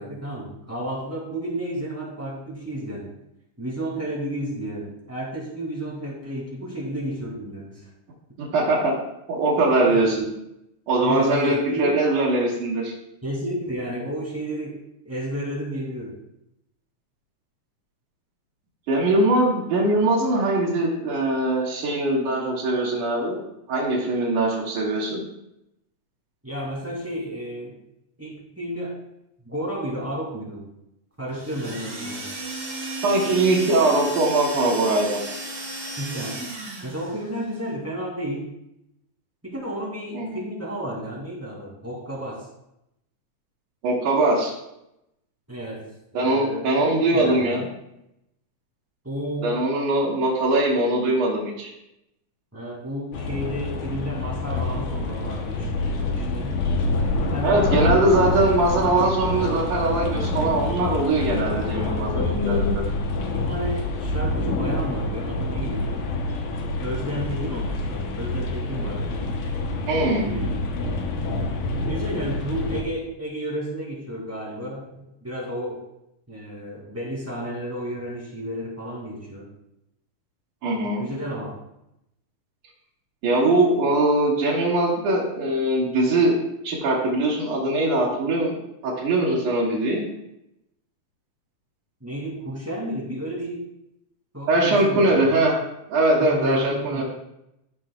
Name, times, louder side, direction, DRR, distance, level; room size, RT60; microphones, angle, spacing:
voice 1, 0.0-3.1 3.6-7.9 9.9-10.2 11.0-12.0 13.2-16.2 26.4-27.8 28.2-29.0 29.5-30.7 31.2-32.4 36.0-36.4 36.8-38.6 39.4-42.5 45.5-47.7 49.0-49.6 52.5-57.8 62.1-62.7 63.3-65.9 66.8-69.1 70.2-70.6 71.7-75.8 76.3-79.5 80.8-81.6 92.0-93.6 94.3-95.3 96.2-97.0, right 1 dB, 5° right, -4 dB, 1.9 m, -32 dB
voice 2, 8.4-8.9 9.3-10.2 10.9-12.9 18.9-23.4 23.7-25.2 33.0-35.2 40.1-40.4 43.8-44.5 46.1-47.7 49.4-51.7 57.4-62.8 69.9-70.3 80.6-81.0 83.2-86.4 86.6-88.5 88.8-90.1 94.5-95.5 95.9-97.0, right 2 dB, 85° right, -6 dB, 3.2 m, -21 dB
sound 1, 31.3-37.2, right 1 dB, 55° right, 2.9 m, -34 dB
sound 2, 53.1-72.8, left 2 dB, 85° left, 2.5 m, -27 dB
16.0 x 6.2 x 2.3 m, 0.84 s
omnidirectional pair, 3.5 m